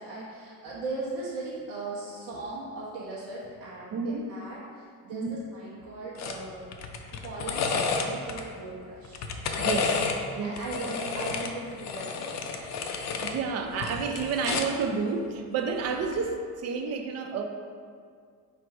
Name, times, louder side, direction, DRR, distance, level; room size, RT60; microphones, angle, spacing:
voice 1, 0.0-6.7 7.2-9.2 10.4-12.5 13.0-13.2, right 2 dB, 90° right, -8 dB, 1.1 m, -38 dB
voice 2, 3.9-4.3 5.1-5.4 9.6-10.0 10.3-10.6 12.8-17.4, right 5 dB, 45° right, 5 dB, 0.4 m, -30 dB
sound 1, 6.2-6.4 6.7-8.4 9.0-10.2 10.6-13.4 13.7-14.8 16.0-16.2, left 5 dB, 50° left, 0.5 m, -31 dB
4.5 x 2.6 x 4.5 m, 2.1 s
cardioid pair, 115°, 36 cm